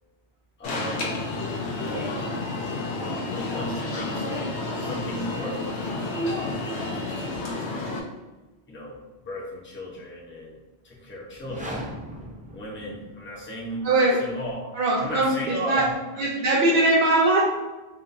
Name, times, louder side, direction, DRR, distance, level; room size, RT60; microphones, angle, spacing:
Alarm, 0.6-8.0, left 2 dB, 85° left, 1.1 m, -30 dB
voice 1, 0.6-1.2 1.8-2.3 3.3-4.4 4.7-7.9 8.7-9.0 9.2-11.8 12.5-16.3 16.7-16.8, equal, 10° left, -5 dB, 0.8 m, -36 dB
sound 1, 11.3-13.4, equal, 15° right, 0.3 m, -38 dB
voice 2, 13.8-14.2 14.7-15.9 16.2-17.4, right 2 dB, 60° right, -5 dB, 0.8 m, -21 dB
4.0 x 3.6 x 2.6 m, 1.2 s
omnidirectional pair, 1.1 m